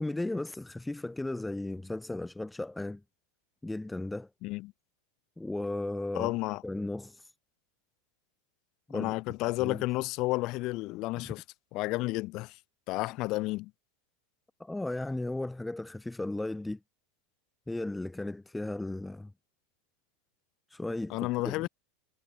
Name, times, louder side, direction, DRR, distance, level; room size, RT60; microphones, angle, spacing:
voice 1, 0.0-3.0 3.6-4.3 5.4-6.3 6.6-7.3 8.9-9.1 9.6-9.8 11.2-11.3 14.6-16.8 17.7-19.3 20.7-21.7, left 2 dB, 5° left, 2.1 m, -35 dB
voice 2, 4.4-4.7 6.1-6.6 8.9-11.4 11.7-12.6 12.9-13.7 21.1-21.7, left 20 dB, 45° left, 0.5 m, -31 dB
supercardioid pair, 135°, 0 cm